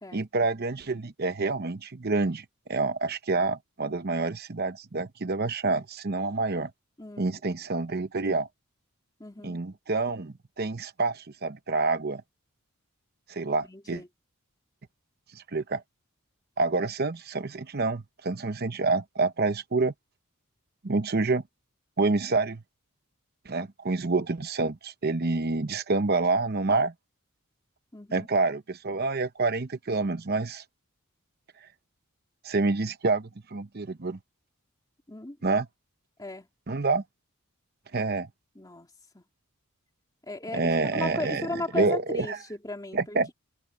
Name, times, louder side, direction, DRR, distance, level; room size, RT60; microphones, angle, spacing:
voice 1, 0.1-6.7 7.2-8.5 9.4-12.2 13.3-14.0 15.3-15.8 16.6-19.9 20.8-21.4 22.0-22.6 23.5-26.9 28.1-30.6 32.4-34.2 35.4-35.7 36.7-37.0 37.9-38.3 40.5-41.5 41.7-42.4 42.9-43.3, right 3 dB, 45° right, 0.8 m, -27 dB
voice 2, 7.0-7.4 9.2-9.6 13.4-14.1 23.6-23.7 27.9-28.3 35.1-35.4 36.2-36.5 38.6-38.9 39.1-39.2 40.3-43.3, left 2 dB, 15° left, 2.4 m, -37 dB
head